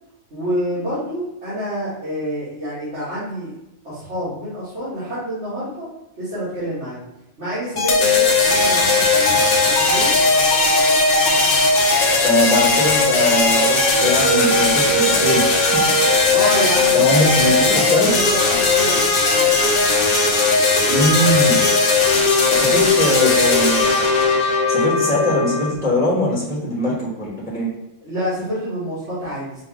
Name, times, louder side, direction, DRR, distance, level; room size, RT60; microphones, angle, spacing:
voice 1, 0.3-3.5 3.8-5.9 6.2-7.0 7.4-10.1 16.3-19.5 28.0-29.6, equal, 60° right, -13 dB, 1.9 m, -27 dB
sound 1, 7.8-25.7, left 3 dB, 50° left, 0.9 m, -17 dB
voice 2, 12.2-15.8 16.9-18.1 20.9-21.6 22.5-24.1 24.7-27.7, left 1 dB, 5° right, -5 dB, 1.0 m, -21 dB
5.3 x 2.2 x 3.6 m, 0.90 s
omnidirectional pair, 1.3 m